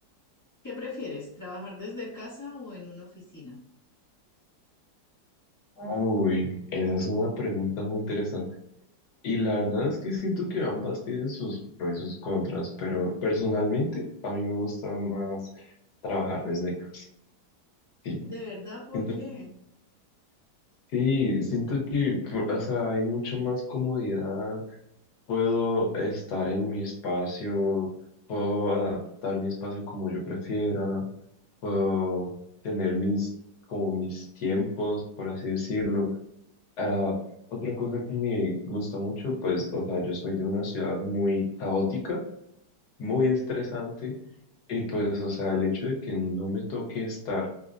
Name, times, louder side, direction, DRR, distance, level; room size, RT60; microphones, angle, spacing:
voice 1, 0.6-3.6 18.2-19.5, left 3 dB, 25° left, -8 dB, 0.3 m, -39 dB
voice 2, 5.8-8.5 9.2-15.7 16.0-17.1 18.0-18.2 18.9-19.2 20.9-24.6 25.3-27.9 28.3-31.0 31.6-32.3 32.6-33.3 33.7-36.1 36.8-37.2 37.5-42.2 43.0-44.1 44.7-47.5, left 2 dB, 65° left, -1 dB, 1.4 m, -29 dB
4.8 x 2.1 x 2.5 m, 0.78 s
omnidirectional pair, 1.9 m